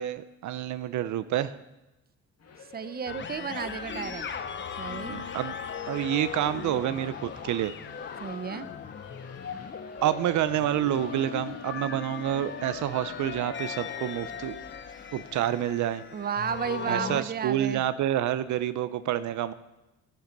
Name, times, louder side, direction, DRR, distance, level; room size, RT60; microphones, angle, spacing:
voice 1, 0.0-1.5 5.1-5.5 5.9-7.7 10.0-14.6 15.1-16.0 16.9-19.5, right 12 dB, 70° right, 13 dB, 0.6 m, -28 dB
sound 1, 2.4-16.0, left 5 dB, 55° left, 2.0 m, -50 dB
voice 2, 2.7-4.3 4.8-5.2 8.2-8.7 16.1-17.8, right 7 dB, 30° right, 13 dB, 0.7 m, -33 dB
sound 2, 3.1-17.2, left 6 dB, 40° left, 0.9 m, -38 dB
11.5 x 9.3 x 5.2 m, 0.98 s
cardioid pair, 90°, 30 cm